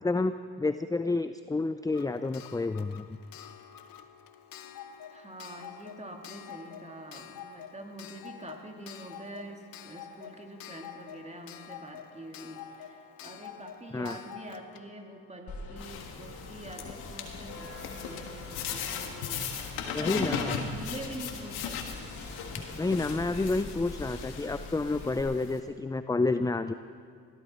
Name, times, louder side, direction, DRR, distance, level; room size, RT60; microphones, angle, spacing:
voice 1, 0.0-3.2 13.9-14.2 19.9-20.6 22.5-26.7, left 3 dB, 10° left, 11 dB, 0.5 m, -30 dB
Clock, 1.9-16.5 17.7-17.8 18.0-18.1, left 9 dB, 65° left, 1.0 m, -48 dB
voice 2, 5.1-22.1, right 1 dB, 20° right, 3 dB, 2.6 m, -45 dB
sound 1, 15.5-25.2, left 3 dB, 50° left, 3.6 m, -44 dB
sound 2, 15.8-25.6, left 7 dB, 85° left, 1.6 m, -38 dB
21.0 x 14.0 x 4.5 m, 2.2 s
supercardioid pair, 55°, 37 cm